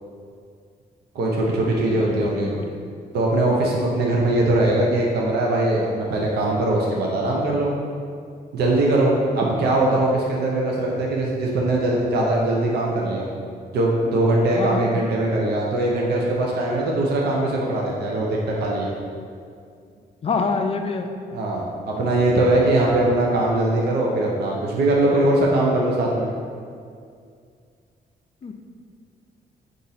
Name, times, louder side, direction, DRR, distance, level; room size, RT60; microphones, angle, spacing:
voice 1, 1.1-2.5 3.1-7.7 8.5-13.3 13.7-18.9 21.3-26.3, right 2 dB, 80° right, -2 dB, 0.5 m, -21 dB
voice 2, 1.9-2.7 14.6-14.9 20.2-21.1 28.4-28.5, left 4 dB, 35° left, 5 dB, 0.4 m, -26 dB
4.0 x 2.5 x 4.0 m, 2.3 s
cardioid pair, 75°, 17 cm